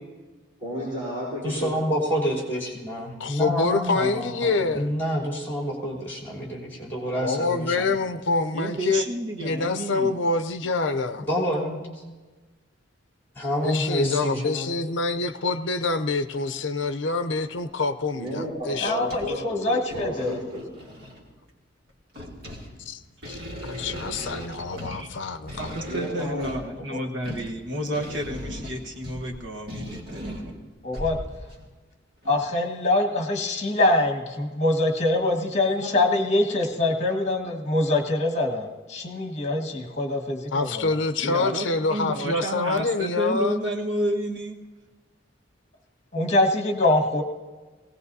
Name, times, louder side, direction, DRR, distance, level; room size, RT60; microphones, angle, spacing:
voice 1, 0.6-1.7 18.1-20.7 25.9-26.5, equal, 25° right, -8 dB, 4.0 m, -32 dB
voice 2, 1.4-7.9 11.3-12.0 13.3-14.7, equal, 10° left, -4 dB, 3.5 m, -28 dB
voice 3, 3.2-4.9 7.2-9.0 9.4-11.3 13.6-19.2 22.9-23.0 23.3-25.8 40.5-43.6, left 3 dB, 65° left, 9 dB, 0.6 m, -26 dB
voice 4, 8.5-10.1 24.7-25.1 25.6-30.4 41.2-44.6, right 1 dB, 65° right, 2 dB, 1.3 m, -31 dB
sound 1, 14.5-14.6 15.1-15.2 16.3-16.7 17.3-17.8 18.3-18.4 18.7-19.4 19.8-21.3 21.9-31.7 32.2-32.4, equal, 50° right, 2.4 m, -38 dB
voice 5, 18.8-20.4 26.9-27.0 30.8-31.2 32.3-40.9 46.1-47.2, left 2 dB, 35° left, 1 dB, 1.8 m, -24 dB
20.0 x 17.5 x 2.7 m, 1.3 s
head